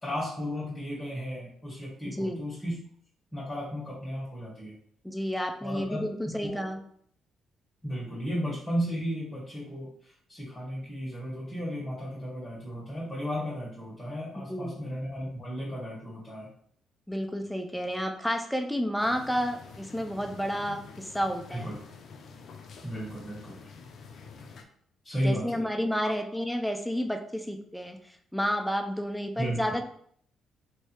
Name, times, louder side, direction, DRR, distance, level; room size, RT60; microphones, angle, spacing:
voice 1, 0.0-2.8 3.3-4.7 5.6-6.0 6.4-6.6 7.8-16.5 21.5-21.8 22.8-23.6 25.0-25.6 26.0-26.1 29.4-29.6, equal, 20° left, -6 dB, 1.4 m, -34 dB
voice 2, 2.0-2.4 5.0-6.8 14.5-14.8 17.1-21.7 25.2-28.0 28.3-29.8, equal, ahead, 4 dB, 0.5 m, -31 dB
sound 1, 19.0-24.6, left 5 dB, 60° left, 0.5 m, -48 dB
3.2 x 2.7 x 3.0 m, 0.62 s
cardioid pair, 90°, 0 cm